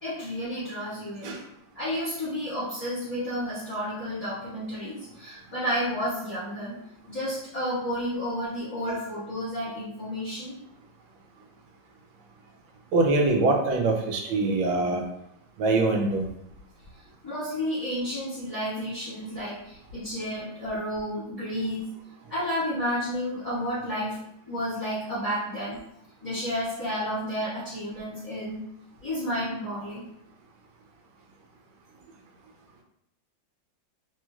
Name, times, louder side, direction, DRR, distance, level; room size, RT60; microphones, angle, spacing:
voice 1, 0.0-1.4 1.7-6.7 7.1-10.5 17.2-21.9 22.3-24.2 24.5-25.8 26.2-28.6 29.0-30.0, equal, 20° left, -13 dB, 1.2 m, -31 dB
voice 2, 12.9-15.0 15.6-16.2, right 2 dB, 85° right, 2 dB, 1.4 m, -23 dB
3.1 x 3.0 x 2.3 m, 0.77 s
omnidirectional pair, 2.1 m